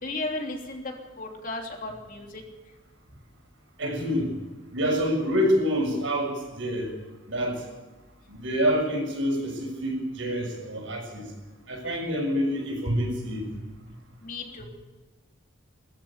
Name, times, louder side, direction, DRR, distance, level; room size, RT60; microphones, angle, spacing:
voice 1, 0.0-2.4 14.2-14.6, left 2 dB, 45° left, 1 dB, 3.3 m, -35 dB
voice 2, 3.8-4.3 4.7-6.9 7.3-7.6 8.3-11.3 11.7-13.5, equal, 75° right, 1 dB, 6.6 m, -27 dB
21.5 x 14.0 x 8.9 m, 1.2 s
head